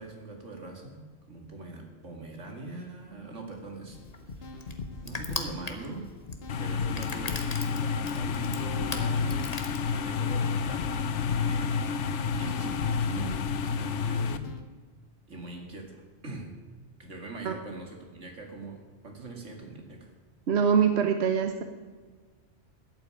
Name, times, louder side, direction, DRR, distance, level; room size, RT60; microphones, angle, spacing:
voice 1, 0.0-4.0 4.3-4.5 5.0-6.1 6.6-11.8 12.2-14.5 15.3-16.6 17.0-20.1, right 3 dB, 85° right, 3 dB, 2.8 m, -42 dB
Crushing, 3.5-10.3, left 3 dB, 35° left, 1.4 m, -40 dB
sound 1, 3.9-14.6, left 4 dB, 55° left, 1.3 m, -42 dB
sound 2, 6.5-14.4, left 5 dB, 80° left, 1.1 m, -30 dB
voice 2, 20.5-21.6, right 7 dB, 65° right, 7 dB, 1.2 m, -24 dB
12.5 x 8.7 x 9.0 m, 1.4 s
omnidirectional pair, 1.2 m